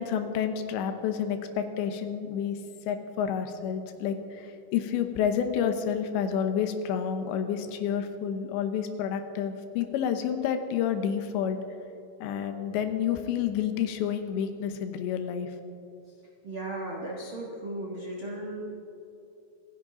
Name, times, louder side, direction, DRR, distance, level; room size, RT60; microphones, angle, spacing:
voice 1, 0.0-2.6 2.9-11.6 12.2-15.5, left 8 dB, 85° left, 8 dB, 3.3 m, -29 dB
voice 2, 16.4-18.7, right 1 dB, 85° right, -2 dB, 1.1 m, -36 dB
27.5 x 10.5 x 3.9 m, 2.8 s
omnidirectional pair, 5.0 m